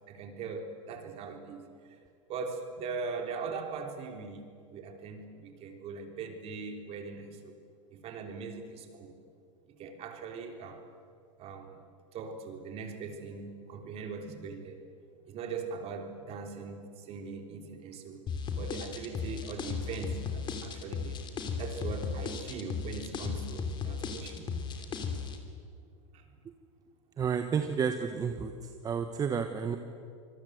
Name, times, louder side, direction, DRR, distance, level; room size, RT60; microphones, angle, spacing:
voice 1, 0.1-1.6 2.3-4.4 4.7-7.5 7.9-9.2 9.8-10.8 11.4-11.7 12.1-14.8 15.3-18.2 18.5-21.2 21.6-24.5 24.8-24.9 26.1-26.3, right 5 dB, 40° right, 5 dB, 3.6 m, -40 dB
sound 1, 18.3-25.4, left 5 dB, 30° left, 3.1 m, -35 dB
voice 2, 27.2-28.5 28.8-29.8, right 6 dB, 25° right, 6 dB, 1.3 m, -30 dB
26.0 x 21.0 x 8.0 m, 2.3 s
supercardioid pair, 130°, 16 cm